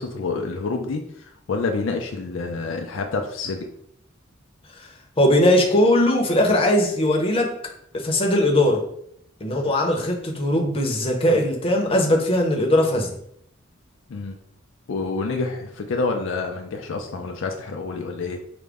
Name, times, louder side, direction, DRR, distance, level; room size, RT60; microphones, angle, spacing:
voice 1, 0.0-3.7 14.1-14.4 14.9-18.4, left 3 dB, 70° left, 3 dB, 0.4 m, -28 dB
voice 2, 5.2-7.5 7.9-8.8 9.4-13.1, left 1 dB, 30° left, 0 dB, 0.7 m, -19 dB
4.9 x 2.1 x 3.4 m, 0.71 s
head